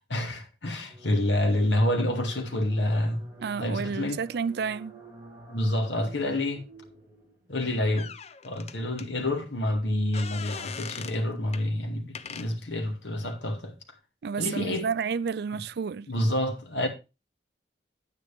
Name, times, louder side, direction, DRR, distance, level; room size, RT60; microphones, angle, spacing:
voice 1, 0.1-3.2 3.6-4.2 5.5-6.6 7.5-8.1 8.4-13.7 14.4-14.9 16.1-16.9, left 1 dB, 90° left, 2.2 m, -28 dB
sound 1, 0.7-7.6, equal, 15° right, 3.3 m, -47 dB
voice 2, 3.4-5.0 14.2-16.1, right 6 dB, 60° right, 0.4 m, -30 dB
sound 2, 8.0-9.1 10.1-11.2 11.5-11.7 12.1-12.5, left 6 dB, 35° left, 0.6 m, -40 dB
9.5 x 9.2 x 3.4 m
head